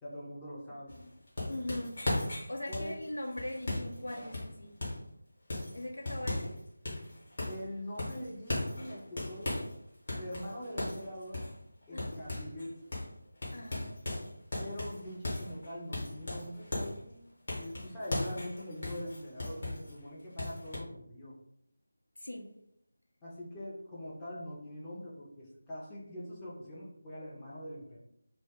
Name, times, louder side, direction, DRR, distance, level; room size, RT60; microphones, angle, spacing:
voice 1, 0.0-1.0 2.7-3.0 7.5-9.7 10.2-11.4 11.9-12.8 14.6-17.2 17.6-21.3 23.2-28.0, equal, 10° left, -8 dB, 0.5 m, -43 dB
sound 1, 0.9-5.1 5.5-6.6 6.8-7.7 8.0-9.7 10.1-12.7 12.9-13.1 13.4-17.0 17.5-19.9 20.4-20.8, left 1 dB, 40° left, 0.9 m, -37 dB
voice 2, 1.5-2.0 2.5-4.7 5.7-6.6 11.9-12.2 13.5-13.9 22.2-22.5, left 1 dB, 70° left, 0 dB, 0.6 m, -40 dB
2.2 x 2.0 x 3.4 m, 0.75 s
figure-of-eight pair, 160°, 0 cm